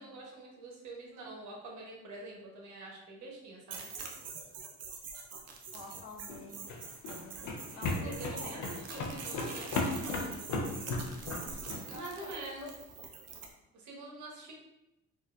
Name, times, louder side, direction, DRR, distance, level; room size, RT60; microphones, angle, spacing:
voice 1, 0.0-3.9 7.7-8.6 8.9-10.4 11.7-12.7 13.7-14.5, right 2 dB, 75° right, -1 dB, 1.0 m, -46 dB
sound 1, 3.7-13.5, right 5 dB, 55° right, 0.7 m, -44 dB
voice 2, 5.7-6.6 7.0-7.3 7.7-8.8 9.3-10.2 11.6-12.3 12.6-12.7, left 3 dB, 55° left, -3 dB, 1.0 m, -48 dB
sound 2, 6.2-11.8, left 3 dB, 70° left, 0.7 m, -36 dB
4.3 x 2.4 x 2.3 m, 0.91 s
cardioid pair, 90°, 30 cm